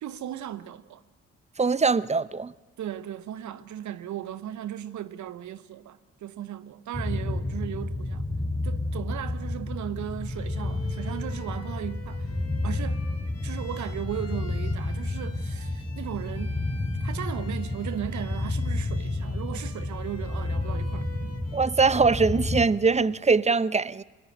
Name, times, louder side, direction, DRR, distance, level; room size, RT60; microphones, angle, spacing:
voice 1, 0.0-1.0 2.8-8.2 8.6-12.4 12.6-13.0 13.4-16.6 17.0-21.4, right 11 dB, 55° right, 0.9 m, -36 dB
voice 2, 1.6-2.5 21.5-24.0, right 4 dB, 20° right, 0.7 m, -22 dB
sound 1, 6.9-22.7, left 2 dB, 10° left, 3.3 m, -31 dB
Bowed string instrument, 10.2-22.8, left 1 dB, 45° left, 3.9 m, -49 dB
22.5 x 20.5 x 8.8 m
hypercardioid pair, 40°, 34 cm